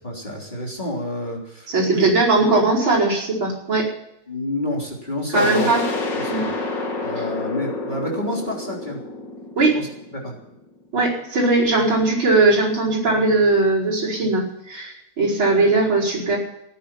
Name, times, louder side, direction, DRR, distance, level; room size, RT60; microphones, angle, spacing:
voice 1, 0.0-2.1 4.3-6.5 7.0-9.0 9.7-9.9 10.2-10.3, left 1 dB, 20° left, -2 dB, 3.6 m, -29 dB
voice 2, 1.7-3.9 5.3-5.8 6.3-6.4 9.6-9.8 10.9-16.4, right 3 dB, 65° right, -3 dB, 5.6 m, -19 dB
sound 1, 5.3-10.8, left 3 dB, 55° left, 2.5 m, -29 dB
18.0 x 9.9 x 7.5 m, 0.82 s
omnidirectional pair, 2.4 m